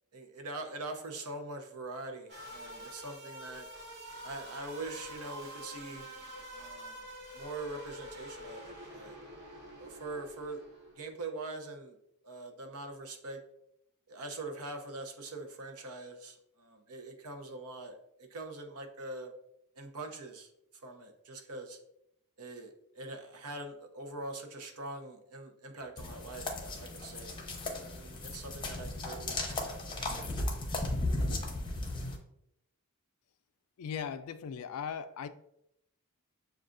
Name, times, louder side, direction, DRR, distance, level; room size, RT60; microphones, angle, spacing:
voice 1, 0.1-3.7 4.2-6.2 6.5-7.1 7.3-8.7 8.9-9.2 9.8-10.6 11.0-12.0 12.2-13.4 14.1-19.3 19.8-21.8 22.4-30.3 31.2-31.4, right 2 dB, 80° right, 0.7 m, -43 dB
sound 1, 2.3-11.1, right 1 dB, 50° right, 0.9 m, -47 dB
sound 2, 26.0-32.2, left 2 dB, 20° left, 0.6 m, -36 dB
voice 2, 33.8-35.3, left 7 dB, 75° left, 0.3 m, -38 dB
6.7 x 2.4 x 2.5 m
head